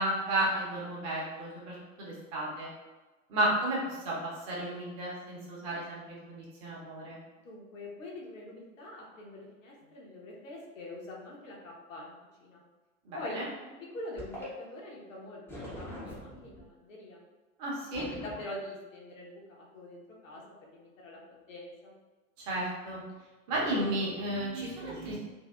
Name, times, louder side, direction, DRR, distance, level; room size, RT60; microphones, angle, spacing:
voice 1, 0.0-2.7 3.3-7.2 13.1-13.4 17.6-18.0 22.4-23.0 23.5-25.2, right 1 dB, 30° right, -5 dB, 0.7 m, -33 dB
voice 2, 7.4-12.6 13.1-17.2 17.9-22.0, left 1 dB, 60° left, -3 dB, 0.8 m, -44 dB
sound 1, 14.2-14.5 15.5-16.6 17.9-18.4, left 1 dB, 5° left, 0.4 m, -42 dB
2.7 x 2.3 x 2.2 m, 1.2 s
figure-of-eight pair, 95°, 43 cm